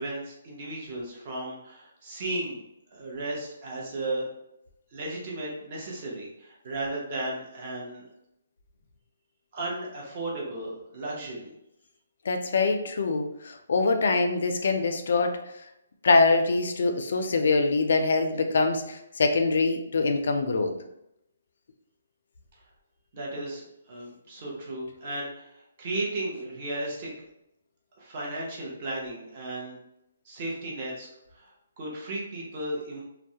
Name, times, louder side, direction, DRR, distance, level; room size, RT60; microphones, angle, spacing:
voice 1, 0.0-2.6 2.9-4.3 4.9-8.1 9.5-11.5 23.1-27.1 28.0-29.8 30.2-31.1 31.3-31.5 31.8-33.0, right 2 dB, 30° right, -3 dB, 0.7 m, -35 dB
voice 2, 12.3-15.4 16.0-20.7, left 3 dB, 60° left, 5 dB, 0.3 m, -24 dB
2.3 x 2.0 x 2.7 m, 0.83 s
hypercardioid pair, 170°, 0 cm